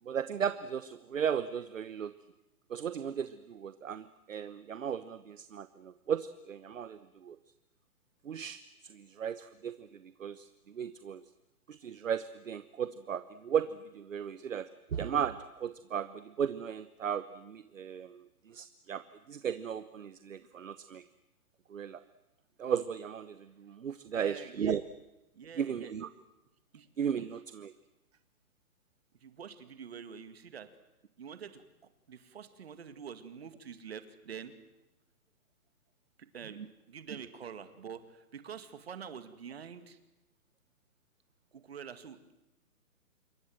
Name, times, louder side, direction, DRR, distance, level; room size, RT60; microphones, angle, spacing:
voice 1, 0.0-2.1 2.7-7.4 8.2-11.3 11.7-21.0 21.7-22.0 22.6-24.8 25.6-26.1 27.0-27.7 36.5-36.7, right 8 dB, 55° right, 13 dB, 1.1 m, -36 dB
voice 2, 24.1-24.8 25.3-26.1 26.7-26.9 29.2-30.7 31.2-31.6 32.1-34.5 36.2-36.6 36.9-40.0 41.5-42.3, right 7 dB, 40° right, 10 dB, 2.2 m, -46 dB
27.5 x 23.0 x 7.9 m, 0.96 s
hypercardioid pair, 175°, 45 cm